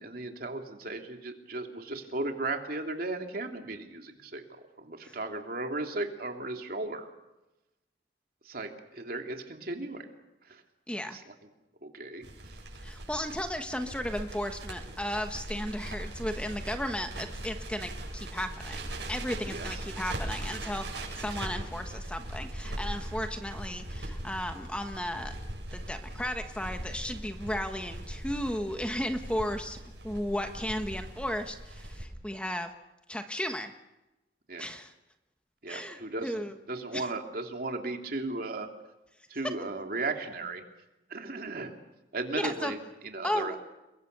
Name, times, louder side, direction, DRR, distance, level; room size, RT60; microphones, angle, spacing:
voice 1, 0.0-7.1 8.4-10.1 10.4-10.6 11.1-11.3 11.8-12.6 19.5-19.7 21.5-21.6 34.5-34.7 35.6-38.7 39.3-40.6 41.1-41.8 42.1-43.6, right 2 dB, 55° right, 4 dB, 3.0 m, -36 dB
voice 2, 10.9-11.2 12.8-25.3 25.7-29.8 30.0-32.7 33.1-33.7 34.6-34.9 35.7-36.5 36.9-37.1 42.3-42.7 43.2-43.6, left 1 dB, 5° left, 6 dB, 1.2 m, -35 dB
Crackle, 12.2-32.0, right 1 dB, 75° right, 7.8 m, -40 dB
30.0 x 22.5 x 6.8 m, 0.99 s
head